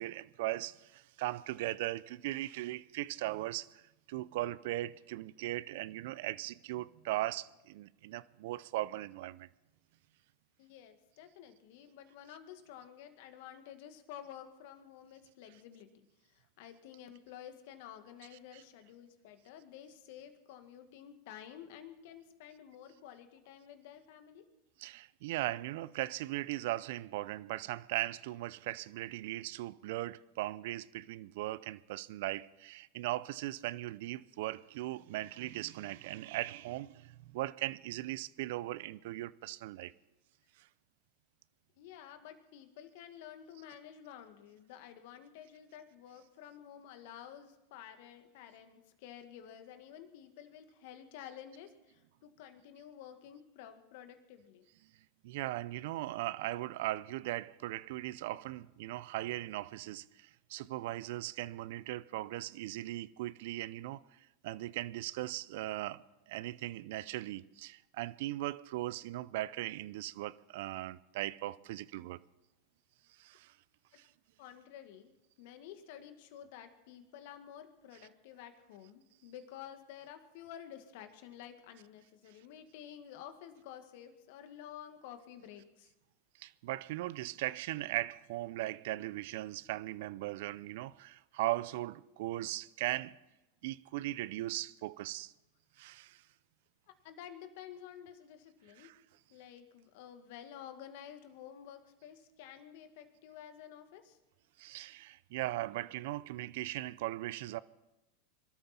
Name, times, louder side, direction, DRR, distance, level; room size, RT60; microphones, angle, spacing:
voice 1, 0.0-3.8 4.1-9.5 18.5-18.6 24.8-39.9 40.6-40.7 55.2-64.0 64.4-72.2 73.2-73.5 74.0-74.1 86.4-93.2 93.6-95.3 95.8-96.2 98.8-99.0 104.6-107.6, right 16 dB, 65° right, 0.5 m, -38 dB
voice 2, 10.6-16.1 16.3-24.5 41.8-54.6 74.4-75.1 75.4-85.9 97.0-98.9 99.3-104.2, left 10 dB, 65° left, 1.9 m, -51 dB
23.5 x 13.0 x 4.4 m
hypercardioid pair, 95°, 0 cm